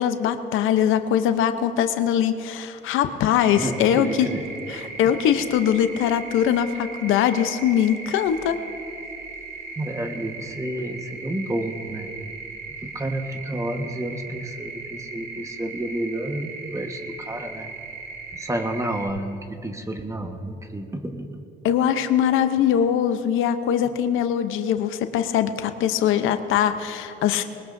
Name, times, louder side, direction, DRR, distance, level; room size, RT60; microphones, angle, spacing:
voice 1, 0.0-4.3 5.0-8.6 21.6-27.4, left 9 dB, 90° left, 9 dB, 0.8 m, -22 dB
sound 1, 3.4-19.1, right 4 dB, 80° right, 4.5 m, -38 dB
voice 2, 3.6-4.5 9.8-12.1 12.8-17.7 18.3-21.4, right 1 dB, 15° right, 5 dB, 1.3 m, -30 dB
21.0 x 20.0 x 2.6 m, 2.8 s
cardioid pair, 90°, 20 cm